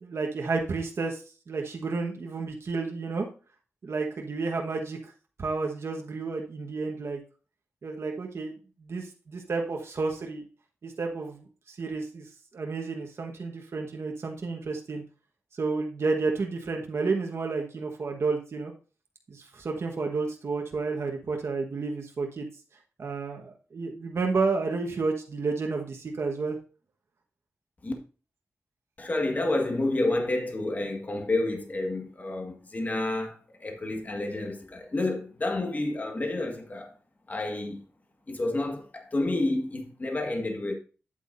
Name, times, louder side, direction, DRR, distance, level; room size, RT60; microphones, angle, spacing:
voice 1, 0.0-1.2 1.5-3.3 3.8-5.0 5.4-7.2 7.8-8.5 8.8-10.4 10.8-11.4 11.7-12.2 12.5-15.0 15.6-18.7 19.3-22.5 23.0-26.6, right 4 dB, 65° right, 1.3 m, -31 dB
voice 2, 29.0-36.9 37.3-37.8 38.3-40.7, left 2 dB, 35° left, 1.7 m, -29 dB
9.2 x 8.2 x 2.6 m
wide cardioid pair, 85°, 5 cm